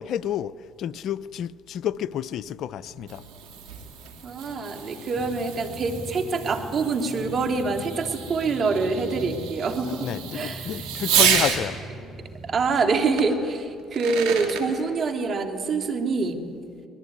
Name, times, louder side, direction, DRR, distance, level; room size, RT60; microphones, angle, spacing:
voice 1, 0.0-3.2 10.0-11.8, left 10 dB, 65° left, 19 dB, 0.6 m, -30 dB
Fireworks, 2.8-11.6 13.2-13.3 13.8-14.7, right 8 dB, 80° right, 3.1 m, -30 dB
voice 2, 4.2-10.7 12.4-16.4, right 4 dB, 50° right, 5 dB, 2.9 m, -26 dB
sound 1, 5.1-13.0, equal, 5° right, 4.4 m, -41 dB
24.0 x 21.0 x 9.5 m, 2.4 s
supercardioid pair, 65°, 0 cm